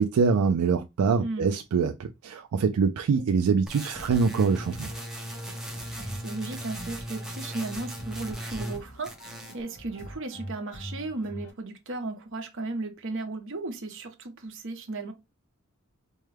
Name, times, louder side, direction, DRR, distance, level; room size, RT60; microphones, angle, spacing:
voice 1, 0.0-4.9, right 5 dB, 80° right, 0.4 m, -24 dB
voice 2, 1.2-1.5 5.7-15.1, right 2 dB, 60° right, 0.9 m, -35 dB
sound 1, 3.7-8.8 9.0-9.6, equal, ahead, 0.8 m, -38 dB
sound 2, 3.9-11.5, right 1 dB, 65° left, 2.4 m, -44 dB
4.5 x 2.2 x 3.3 m
head